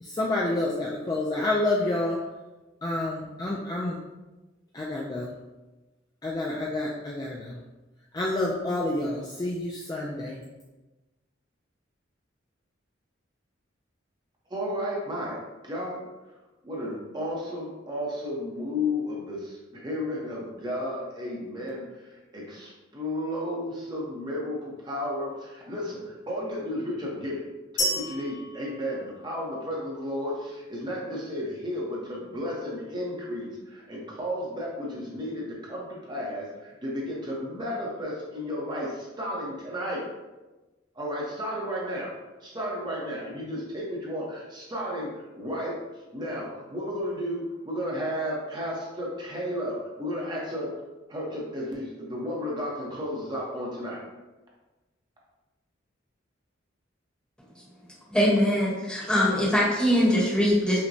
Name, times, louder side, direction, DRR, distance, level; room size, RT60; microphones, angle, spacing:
voice 1, 0.0-2.2 2.8-4.0 4.7-5.3 6.2-7.6 8.1-10.4, left 2 dB, 20° left, -3 dB, 0.3 m, -28 dB
voice 2, 14.5-15.4 15.6-16.0 16.6-27.4 27.7-40.0 41.0-42.1 42.4-45.1 45.4-45.8 46.1-50.7 51.1-54.0, left 1 dB, 25° right, -4 dB, 0.8 m, -33 dB
sound 1, 27.8-29.7, equal, 70° left, 1.1 m, -32 dB
voice 3, 58.1-60.8, equal, 5° left, -7 dB, 1.1 m, -22 dB
5.7 x 2.2 x 2.6 m, 1.1 s
head